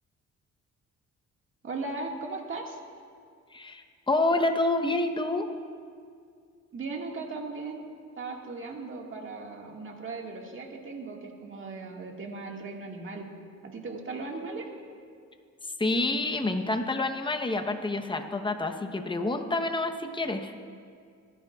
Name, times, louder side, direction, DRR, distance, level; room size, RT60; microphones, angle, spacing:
voice 1, 1.6-2.8 6.7-7.9 8.2-13.3 13.6-14.7, right 3 dB, 40° right, 1 dB, 1.9 m, -37 dB
voice 2, 3.5-5.5 15.8-20.5, left 2 dB, 15° left, 5 dB, 1.0 m, -28 dB
25.5 x 10.5 x 2.4 m, 2.2 s
cardioid pair, 90°, 30 cm